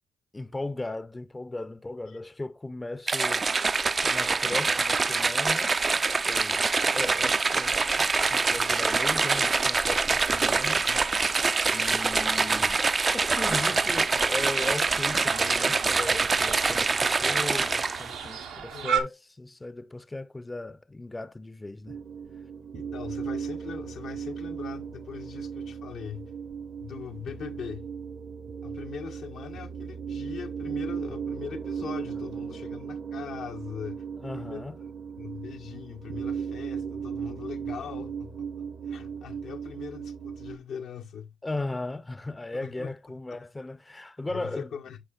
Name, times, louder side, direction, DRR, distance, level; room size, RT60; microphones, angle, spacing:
voice 1, 0.3-3.5 4.0-5.7 6.2-6.6 6.9-10.8 11.7-22.0 34.2-34.8 41.4-44.7, left 2 dB, 20° left, 0.5 m, -37 dB
sound 1, 3.1-18.2, right 4 dB, 35° right, 0.4 m, -25 dB
sound 2, 13.1-19.0, right 7 dB, 85° right, 1.0 m, -36 dB
voice 2, 18.7-19.0 22.7-26.3 26.8-27.9 28.6-34.0 34.4-34.6 35.2-41.4 42.5-42.9 43.3-43.4 44.3-45.0, left 7 dB, 70° left, 0.7 m, -41 dB
sound 3, 21.9-40.6, right 7 dB, 55° right, 0.8 m, -36 dB
10.0 x 4.9 x 2.3 m
supercardioid pair, 55°, 0 cm